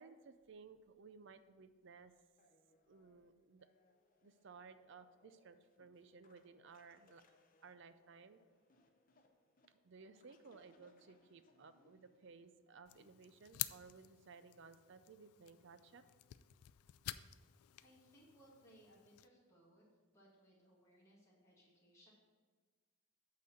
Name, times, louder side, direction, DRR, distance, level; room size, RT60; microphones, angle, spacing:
voice 1, 0.0-2.1 2.9-3.7 4.2-7.2 7.6-8.4 9.8-16.0, right 5 dB, 55° right, 11 dB, 0.4 m, -59 dB
sound 1, 2.4-13.2, left 2 dB, 40° left, 0.7 m, -73 dB
sound 2, 12.9-19.3, left 15 dB, 80° left, 0.3 m, -50 dB
voice 2, 17.8-19.8 20.1-22.1, right 1 dB, 15° left, -6 dB, 1.9 m, -66 dB
8.4 x 4.0 x 6.7 m, 1.4 s
head